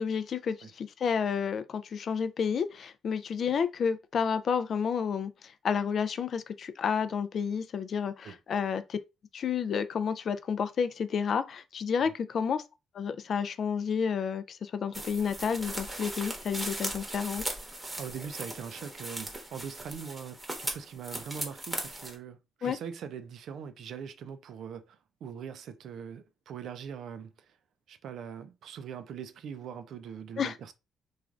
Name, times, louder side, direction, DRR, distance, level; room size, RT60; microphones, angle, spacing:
voice 1, 0.0-5.3 5.6-9.0 9.3-12.6 12.9-17.4 22.6-22.8 30.4-30.5, left 6 dB, 55° left, 0.3 m, -30 dB
sound 1, 14.9-22.1, right 1 dB, 15° right, 0.9 m, -38 dB
voice 2, 18.0-27.6 27.9-30.7, right 7 dB, 70° right, 0.4 m, -42 dB
3.2 x 2.3 x 2.4 m
cardioid pair, 90°, 0 cm